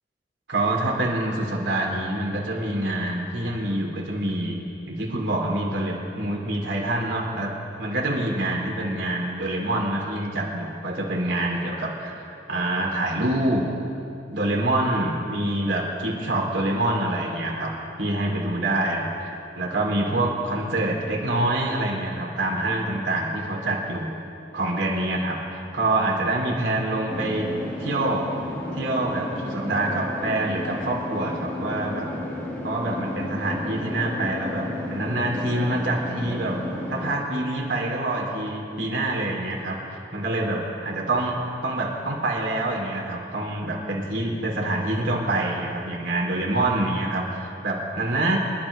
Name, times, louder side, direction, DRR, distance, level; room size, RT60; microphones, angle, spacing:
voice 1, 0.5-4.6 4.9-7.5 7.8-13.6 14.3-17.7 18.0-24.2 24.5-27.5 27.8-28.3 28.7-32.1 32.6-36.6 36.9-41.3 41.6-48.4, right 1 dB, 80° right, -2 dB, 3.2 m, -26 dB
sound 1, 27.1-37.1, left 1 dB, 10° left, 2.0 m, -32 dB
27.0 x 12.5 x 3.3 m, 2.7 s
head